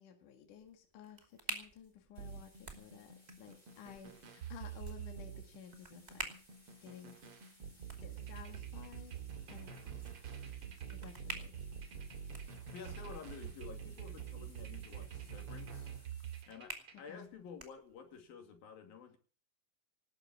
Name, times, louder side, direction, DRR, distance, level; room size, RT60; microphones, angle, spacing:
voice 1, 0.0-6.3 6.8-7.2 8.0-9.1 9.5-10.1 10.9-11.5 17.1-17.3, left 9 dB, 65° left, 5 dB, 3.3 m, -54 dB
sound 1, 0.6-18.3, right 2 dB, 15° right, 2.1 m, -52 dB
sound 2, 2.1-16.4, left 1 dB, 10° left, 7.5 m, -65 dB
sound 3, 2.2-17.1, right 8 dB, 45° right, 2.6 m, -47 dB
voice 2, 12.7-15.9 16.4-19.2, left 6 dB, 85° left, 5 dB, 4.5 m, -51 dB
19.0 x 8.8 x 7.3 m, 0.39 s
omnidirectional pair, 4.1 m